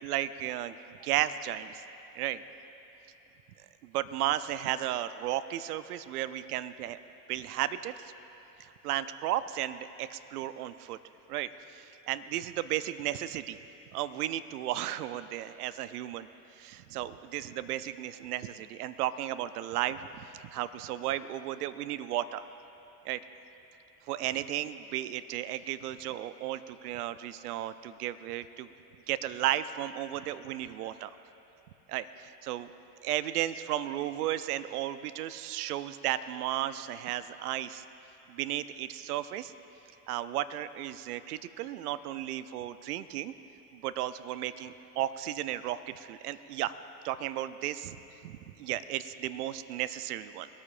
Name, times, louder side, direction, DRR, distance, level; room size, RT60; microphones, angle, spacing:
voice 1, 0.0-1.8 2.1-2.4 3.8-7.0 7.3-8.1 8.6-11.0 11.3-13.6 13.9-16.3 16.6-22.5 23.0-23.2 24.1-28.7 29.1-31.1 31.9-32.7 33.0-37.8 38.3-39.5 40.1-43.3 43.7-46.7 47.0-48.0 48.2-50.5, right 13 dB, 80° right, 14 dB, 0.6 m, -34 dB
21.5 x 13.5 x 2.5 m, 3.0 s
hypercardioid pair, 70°, 45 cm